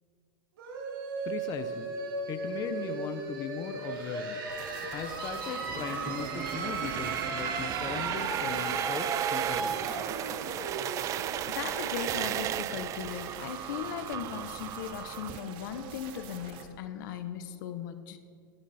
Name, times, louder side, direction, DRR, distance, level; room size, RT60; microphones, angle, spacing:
sound 1, 0.6-12.1, right 4 dB, 80° right, 4.1 m, -36 dB
voice 1, 1.2-1.9 2.3-4.4 4.9-9.7, left 8 dB, 30° left, 8 dB, 0.8 m, -38 dB
sound 2, 4.5-16.6, right 6 dB, 45° right, 1.6 m, -46 dB
sound 3, 5.6-15.4, right 12 dB, 30° right, 0.4 m, -35 dB
voice 2, 11.5-18.2, left 9 dB, 65° left, 9 dB, 1.1 m, -38 dB
20.5 x 11.0 x 4.3 m, 2.3 s
supercardioid pair, 135°, 11 cm